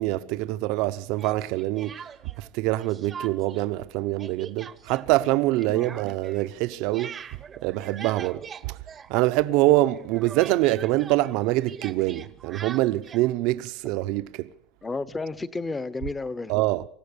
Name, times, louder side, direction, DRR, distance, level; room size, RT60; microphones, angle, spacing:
voice 1, 0.0-2.0 2.4-7.2 7.6-8.8 9.1-14.5 16.5-16.9, right 17 dB, 65° right, 0.9 m, -25 dB
Speech, 1.2-2.5 2.8-3.7 3.9-9.6 9.9-13.3, right 7 dB, 25° right, 0.9 m, -42 dB
voice 2, 14.8-16.6, left 3 dB, 15° left, 1.0 m, -32 dB
27.5 x 15.5 x 6.9 m
cardioid pair, 155°, 0 cm